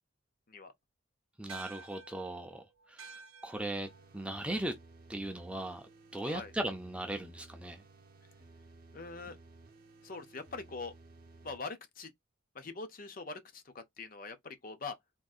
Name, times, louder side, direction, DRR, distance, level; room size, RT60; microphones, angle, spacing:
voice 1, 1.4-3.1 3.4-4.7 5.1-5.8 6.1-7.8, right 1 dB, 5° right, 0.4 m, -38 dB
sound 1, 1.5-6.2, right 4 dB, 85° right, 0.6 m, -53 dB
sound 2, 3.6-11.6, right 2 dB, 45° right, 0.7 m, -57 dB
voice 2, 8.9-9.4 10.0-10.9 11.4-12.1 12.5-15.0, left 4 dB, 40° left, 0.6 m, -43 dB
3.6 x 2.6 x 2.3 m
head